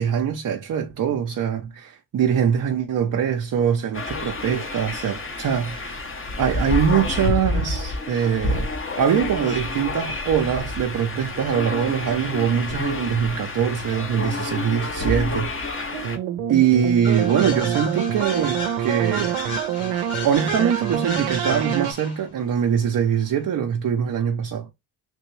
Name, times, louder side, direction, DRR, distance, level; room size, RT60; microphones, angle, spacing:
voice 1, 0.0-6.0 6.4-8.7 9.0-16.2 16.5-19.4 20.2-24.7, right 8 dB, 40° right, 0.7 m, -23 dB
sound 1, 3.9-16.2, left 2 dB, 25° left, 0.9 m, -29 dB
sound 2, 15.9-21.9, right 10 dB, 85° right, 0.6 m, -26 dB
sound 3, 17.0-22.2, left 2 dB, 90° left, 2.3 m, -33 dB
3.4 x 2.5 x 3.2 m
supercardioid pair, 65°, 49 cm